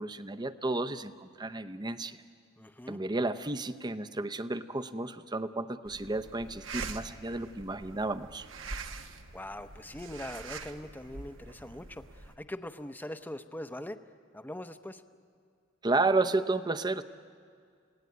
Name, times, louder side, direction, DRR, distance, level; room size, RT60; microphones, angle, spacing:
voice 1, 0.0-2.2 2.9-8.5 15.8-17.0, right 2 dB, 20° right, 11 dB, 0.7 m, -32 dB
voice 2, 2.6-3.0 9.3-14.0 14.3-15.0, left 1 dB, 10° left, 9 dB, 0.8 m, -42 dB
sound 1, 5.8-12.4, right 4 dB, 75° right, 1.2 m, -44 dB
30.0 x 17.5 x 9.6 m, 2.2 s
head